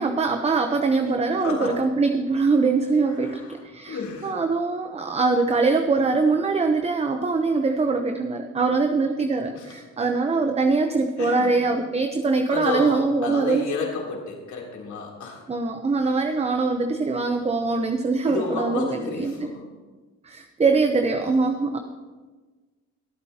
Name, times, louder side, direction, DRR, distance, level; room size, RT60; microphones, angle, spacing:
voice 1, 0.0-13.7 15.5-19.3 20.2-21.8, right 4 dB, 20° right, 6 dB, 0.8 m, -23 dB
voice 2, 1.3-1.9 3.1-4.3 9.5-9.8 11.2-11.7 12.5-15.4 18.2-19.7 21.7-21.8, left 4 dB, 70° left, -2 dB, 3.2 m, -31 dB
22.0 x 8.9 x 2.9 m, 1.3 s
cardioid pair, 90°, 30 cm